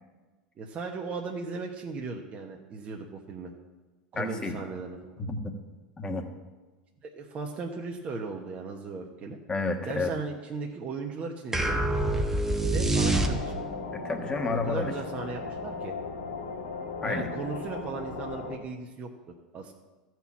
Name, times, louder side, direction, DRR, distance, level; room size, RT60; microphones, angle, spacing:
voice 1, 0.6-3.5 4.1-5.2 7.2-9.4 9.8-12.2 12.6-13.6 14.4-15.9 17.0-19.1 19.5-19.7, right 4 dB, 35° right, 0 dB, 1.3 m, -37 dB
voice 2, 4.1-4.6 5.2-5.5 6.0-6.3 9.5-10.1 13.9-14.9 17.0-17.3, left 3 dB, 20° left, 4 dB, 1.5 m, -30 dB
sound 1, 11.5-13.8, right 2 dB, 10° right, 1.1 m, -26 dB
sound 2, 13.0-18.6, left 4 dB, 85° left, 1.6 m, -36 dB
14.0 x 4.6 x 7.3 m, 1.3 s
hypercardioid pair, 95°, 4 cm